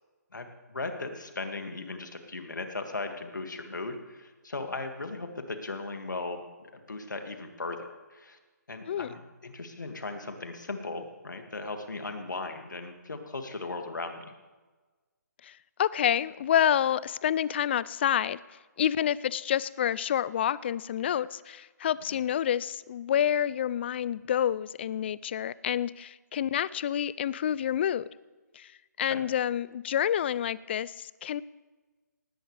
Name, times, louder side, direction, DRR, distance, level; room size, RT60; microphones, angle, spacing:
voice 1, 0.3-8.4 8.7-14.3 22.1-22.2 29.1-29.2, left 3 dB, 85° left, 6 dB, 2.1 m, -37 dB
voice 2, 15.4-18.4 18.8-28.1 28.5-28.7 29.0-31.4, left 10 dB, 35° left, 20 dB, 0.4 m, -28 dB
19.0 x 16.0 x 3.3 m, 1.3 s
figure-of-eight pair, 150°, 10 cm